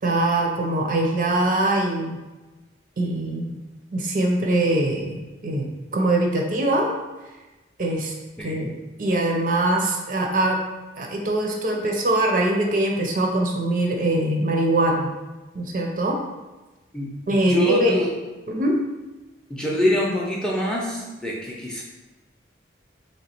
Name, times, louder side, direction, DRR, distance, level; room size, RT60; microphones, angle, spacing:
voice 1, 0.0-2.2 3.0-3.6 3.9-6.9 7.8-8.1 8.4-8.7 9.0-10.6 11.0-15.1 15.5-16.2 17.3-18.0 18.5-18.8, right 1 dB, 45° right, 1 dB, 0.5 m, -22 dB
voice 2, 16.9-18.1 19.5-21.8, left 1 dB, 5° left, -3 dB, 0.5 m, -25 dB
3.2 x 2.9 x 4.3 m, 1.1 s
head